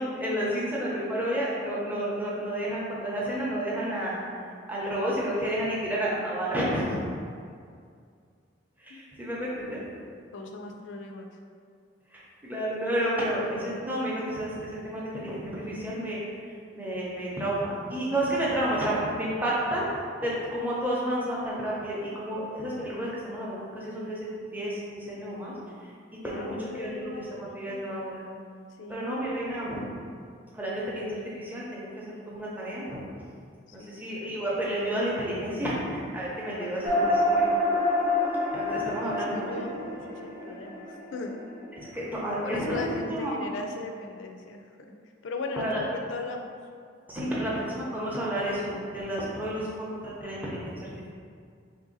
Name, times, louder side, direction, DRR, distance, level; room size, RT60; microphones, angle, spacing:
voice 1, 0.0-4.2 4.7-7.0 8.8-9.8 12.1-16.2 16.7-19.9 20.2-25.5 26.2-28.2 28.9-29.8 30.5-33.0 33.7-37.5 38.5-39.6 41.8-43.4 45.6-45.8 47.1-51.1, right 1 dB, 10° right, -6 dB, 0.6 m, -31 dB
voice 2, 10.3-11.3 26.2-27.4 28.8-29.1 33.7-34.0 36.5-37.0 39.0-41.4 42.4-44.9 45.2-46.6 47.4-47.5, left 3 dB, 70° left, 3 dB, 0.4 m, -38 dB
sound 1, 36.8-41.6, left 1 dB, 50° right, 0.7 m, -27 dB
3.1 x 2.6 x 3.9 m, 2.2 s
head